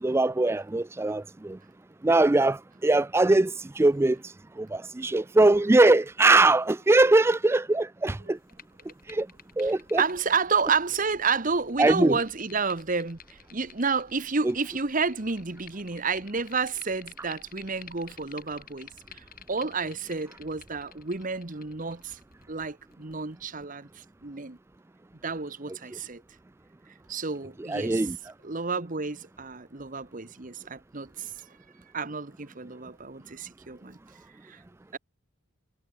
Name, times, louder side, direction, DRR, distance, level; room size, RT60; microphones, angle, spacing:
voice 1, 0.0-1.6 2.0-4.2 4.6-8.4 9.1-9.3 9.6-10.0 11.8-12.2 14.4-14.5 25.9-26.0 27.6-28.2, right 2 dB, 10° right, 0.3 m, -22 dB
sound 1, 8.4-23.6, left 8 dB, 45° left, 6.2 m, -52 dB
voice 2, 9.6-13.2 13.5-18.9 19.1-22.2 22.5-24.6 25.2-26.2 27.1-28.1 28.4-31.3 31.9-34.0 34.4-34.6 34.9-35.0, right 5 dB, 40° right, 1.2 m, -30 dB
head